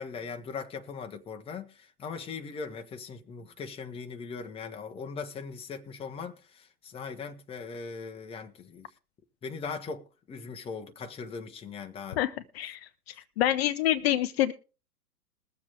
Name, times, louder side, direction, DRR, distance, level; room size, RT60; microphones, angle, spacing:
voice 1, 0.0-8.9 9.4-12.2, left 5 dB, 10° left, 0.9 m, -40 dB
voice 2, 12.2-12.8 13.4-14.5, left 13 dB, 45° left, 0.7 m, -26 dB
21.5 x 7.3 x 3.4 m
figure-of-eight pair, 105°, 45 cm